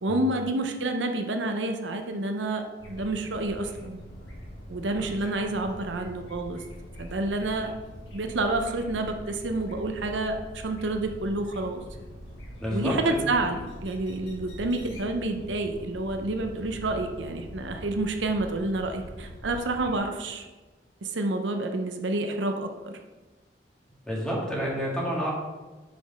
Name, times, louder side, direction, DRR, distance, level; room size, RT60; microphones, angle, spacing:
voice 1, 0.0-4.0 4.7-6.6 7.0-7.7 8.1-11.8 12.7-20.4 21.0-23.0, right 2 dB, 80° right, 5 dB, 0.7 m, -29 dB
sound 1, 2.8-20.0, equal, 85° left, 1.9 m, -43 dB
voice 2, 12.6-13.2 24.1-25.3, equal, 5° left, -4 dB, 1.7 m, -29 dB
6.0 x 4.8 x 5.3 m, 1.2 s
head